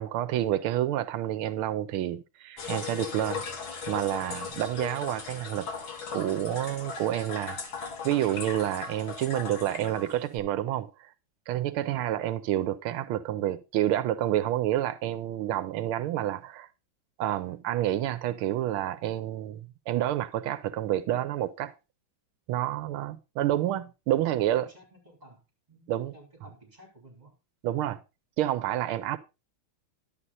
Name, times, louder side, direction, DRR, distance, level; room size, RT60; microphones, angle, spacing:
voice 1, 0.0-3.4 3.9-5.7 6.1-7.6 8.0-11.1 11.5-16.7 17.2-21.7 22.5-24.6 25.9-26.1 27.6-28.0 28.4-29.2, right 12 dB, 90° right, 1.6 m, -29 dB
sound 1, 2.6-10.4, left 5 dB, 75° left, 2.5 m, -38 dB
voice 2, 24.1-27.4, equal, 20° right, 4.1 m, -54 dB
11.0 x 8.0 x 4.1 m
omnidirectional pair, 2.3 m